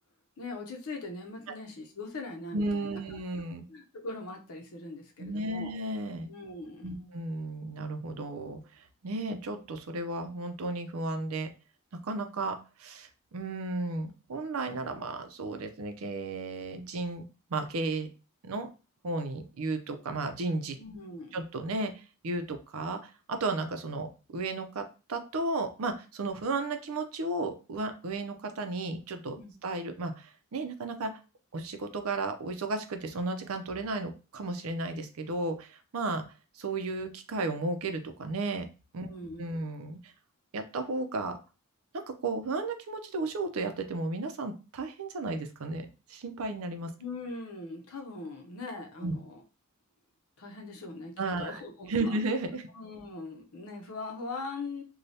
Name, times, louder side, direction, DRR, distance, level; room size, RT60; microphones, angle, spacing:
voice 1, 0.4-3.0 3.7-5.8 6.3-7.1 20.8-21.4 29.3-29.5 39.1-39.5 47.0-49.4 50.4-52.2 52.7-54.8, left 3 dB, 80° left, 2 dB, 0.7 m, -41 dB
voice 2, 2.5-3.7 5.2-6.3 6.8-8.6 9.0-11.5 12.0-17.2 17.5-18.1 18.4-18.7 19.0-20.8 21.3-29.4 29.6-31.1 31.5-36.2 36.6-38.7 38.9-40.1 40.5-41.4 41.9-46.9 49.0-49.1 51.2-51.6 51.9-52.6, right 2 dB, 70° right, 6 dB, 0.5 m, -34 dB
3.2 x 2.3 x 2.7 m, 0.32 s
head